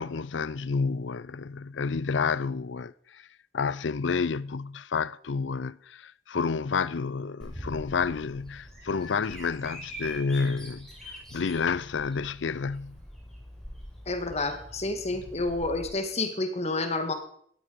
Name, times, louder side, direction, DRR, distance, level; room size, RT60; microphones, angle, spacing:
voice 1, 0.0-3.3 3.5-13.0 15.1-15.2, left 5 dB, 90° left, 0.5 m, -30 dB
Bird vocalization bird call bird song, 7.4-15.9, equal, 5° left, 5.4 m, -44 dB
voice 2, 14.1-17.1, left 2 dB, 35° left, 1.9 m, -29 dB
18.0 x 13.0 x 5.2 m
head